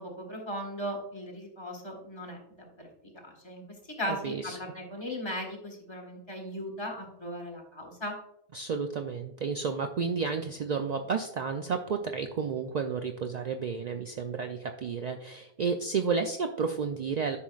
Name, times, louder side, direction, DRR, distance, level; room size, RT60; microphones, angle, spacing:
voice 1, 0.0-2.9 3.2-8.2, equal, 20° left, 0 dB, 1.6 m, -38 dB
voice 2, 4.1-4.6 8.5-17.4, right 5 dB, 70° right, 5 dB, 0.4 m, -31 dB
10.0 x 5.7 x 2.4 m, 0.81 s
omnidirectional pair, 1.3 m